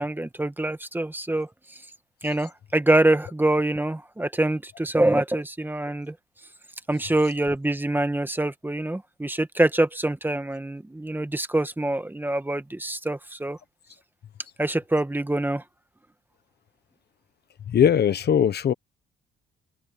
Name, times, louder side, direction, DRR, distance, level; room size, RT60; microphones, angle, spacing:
voice 1, 0.0-1.5 2.2-6.2 6.9-13.6 14.6-15.6, right 1 dB, 10° right, 1.6 m, -25 dB
voice 2, 17.7-18.7, left 8 dB, 55° left, 1.3 m, -20 dB
cardioid pair, 90°, 20 cm